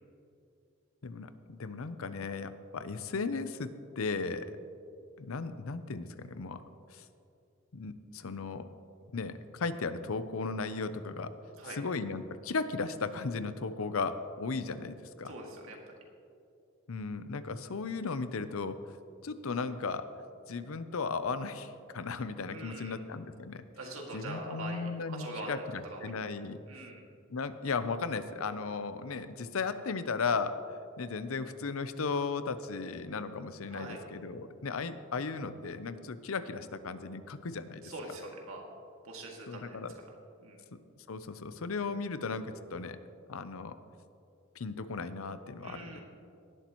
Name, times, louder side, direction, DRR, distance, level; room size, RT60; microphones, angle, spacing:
voice 1, 1.0-3.7 4.0-4.6 5.2-6.6 6.9-7.0 7.7-8.7 9.1-11.3 11.7-15.3 16.9-18.8 19.2-20.1 20.5-23.6 24.1-26.6 27.3-30.6 31.0-37.8 39.5-39.9 41.1-43.0 43.3-43.8 44.6-46.0, left 4 dB, 80° left, 12 dB, 0.6 m, -36 dB
voice 2, 15.2-15.9 22.5-23.0 23.8-26.2 26.7-27.0 33.7-34.0 37.8-38.6 39.0-39.8 40.4-40.6 45.6-46.0, right 1 dB, 85° right, 0 dB, 2.2 m, -43 dB
18.0 x 11.5 x 3.0 m, 2.6 s
head